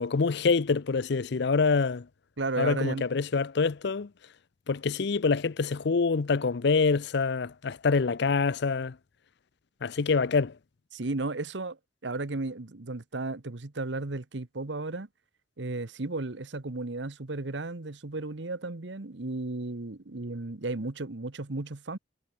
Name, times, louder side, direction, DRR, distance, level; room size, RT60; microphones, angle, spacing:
voice 1, 0.0-2.1 2.6-4.1 4.7-9.0 9.8-10.6, left 4 dB, 65° left, 0.6 m, -26 dB
voice 2, 2.4-3.0 10.9-15.1 15.6-22.0, right 2 dB, 65° right, 1.2 m, -34 dB
head